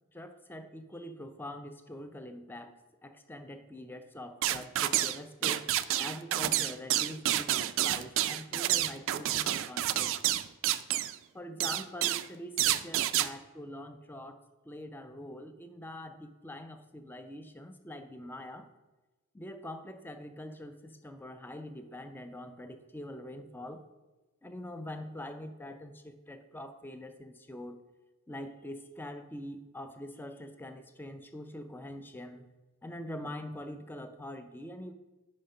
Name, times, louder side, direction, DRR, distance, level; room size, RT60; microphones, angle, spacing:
voice 1, 0.1-2.7 3.0-5.7 6.0-10.1 11.3-14.4 14.7-18.7 19.3-23.8 24.4-27.8 28.3-32.5 32.8-34.9, left 1 dB, 10° left, 8 dB, 0.4 m, -44 dB
sound 1, 4.4-5.2 5.4-11.2 11.6-12.3 12.6-13.3, right 13 dB, 60° right, 0.3 m, -29 dB
7.4 x 4.3 x 5.4 m, 1.2 s
head